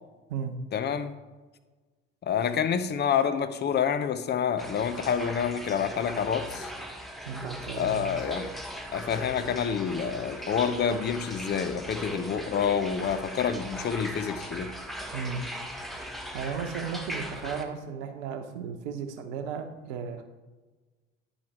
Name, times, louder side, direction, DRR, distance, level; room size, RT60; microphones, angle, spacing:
voice 1, 0.7-1.1 2.2-6.7 7.8-8.5 8.9-14.7, left 7 dB, 30° left, 11 dB, 0.7 m, -28 dB
sound 1, 4.6-17.6, equal, ahead, 1.1 m, -39 dB
voice 2, 7.2-8.1 15.1-15.4 16.3-20.2, right 6 dB, 65° right, 6 dB, 1.1 m, -35 dB
10.5 x 4.9 x 4.3 m, 1.3 s
figure-of-eight pair, 60°, 37 cm